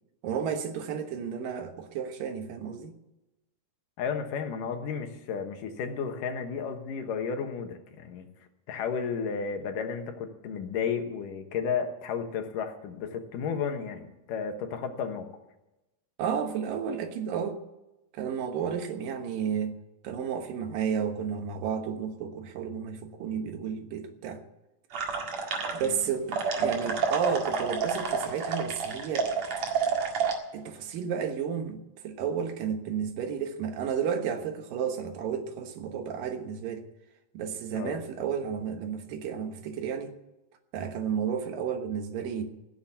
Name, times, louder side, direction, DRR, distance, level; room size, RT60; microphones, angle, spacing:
voice 1, 0.2-3.0 16.2-17.6 18.1-19.8 20.0-24.4 25.7-29.3 30.5-36.8 37.3-40.1 40.7-42.4, right 7 dB, 85° right, 7 dB, 2.9 m, -32 dB
voice 2, 4.0-8.3 8.7-15.3 25.8-26.0 37.7-38.0, left 6 dB, 75° left, 5 dB, 2.9 m, -33 dB
sound 1, 24.9-26.0 26.3-30.3, right 5 dB, 55° right, 3.1 m, -29 dB
15.5 x 7.3 x 9.5 m, 0.96 s
omnidirectional pair, 3.9 m